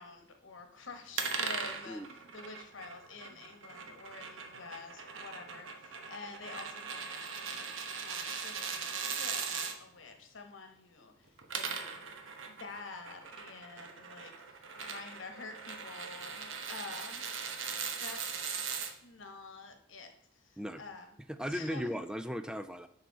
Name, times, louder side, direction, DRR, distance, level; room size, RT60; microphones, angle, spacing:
voice 1, 0.0-2.0 2.3-7.7 8.0-12.1 12.5-17.3 17.9-18.4 19.0-21.1 21.5-21.9, left 4 dB, 75° left, 5 dB, 1.1 m, -48 dB
sound 1, 1.2-9.8 11.3-18.9, right 6 dB, 80° right, 0.9 m, -40 dB
voice 2, 21.3-22.9, equal, 5° right, 10 dB, 0.3 m, -37 dB
6.7 x 5.6 x 4.6 m, 0.69 s
head